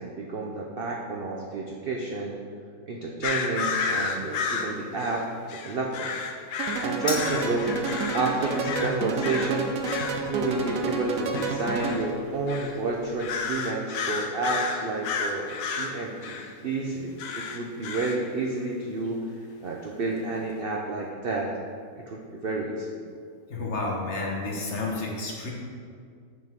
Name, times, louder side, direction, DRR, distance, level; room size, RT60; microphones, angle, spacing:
voice 1, 0.0-2.4 2.9-6.1 6.8-7.7 8.1-9.8 10.3-16.4 16.6-19.2 19.6-21.5 22.0-22.9, right 3 dB, 80° right, -1 dB, 0.5 m, -30 dB
sound 1, 3.2-9.5 9.8-10.2 11.3-12.1 12.5-12.8 13.2-16.5 17.2-18.2, left 5 dB, 90° left, 1.2 m, -32 dB
sound 2, 6.6-12.2, right 4 dB, 65° right, 1.0 m, -30 dB
sound 3, 7.1-13.6, left 2 dB, 20° left, 0.6 m, -43 dB
voice 2, 23.5-25.5, left 2 dB, 50° left, -2 dB, 1.2 m, -30 dB
7.1 x 6.1 x 3.5 m, 2.2 s
omnidirectional pair, 1.8 m